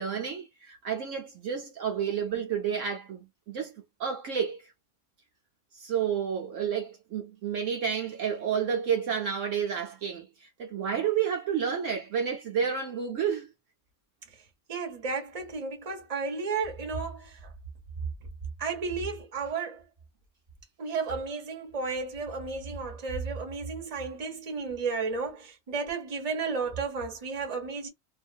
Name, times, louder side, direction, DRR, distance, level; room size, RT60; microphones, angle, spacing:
voice 1, 0.0-3.7 4.0-4.6 5.7-13.5, right 7 dB, 65° right, 1.1 m, -30 dB
voice 2, 14.7-17.5 18.6-19.8 20.8-27.9, right 4 dB, 30° right, 1.0 m, -33 dB
2.5 x 2.5 x 2.4 m
omnidirectional pair, 1.5 m